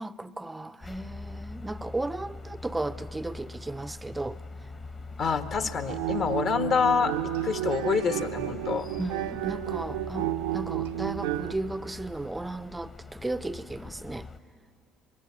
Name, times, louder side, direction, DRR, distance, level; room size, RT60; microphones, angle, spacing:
voice 1, 0.0-4.4 5.6-5.7 9.0-14.3, right 2 dB, 15° right, 0.6 m, -35 dB
sound 1, 0.8-14.4, left 3 dB, 30° left, 1.2 m, -43 dB
voice 2, 5.2-7.1 7.4-8.9, left 5 dB, 50° left, 1.4 m, -26 dB
sound 2, 5.8-11.5, right 14 dB, 75° right, 0.7 m, -31 dB
23.0 x 22.0 x 8.6 m
hypercardioid pair, 60°, 0 cm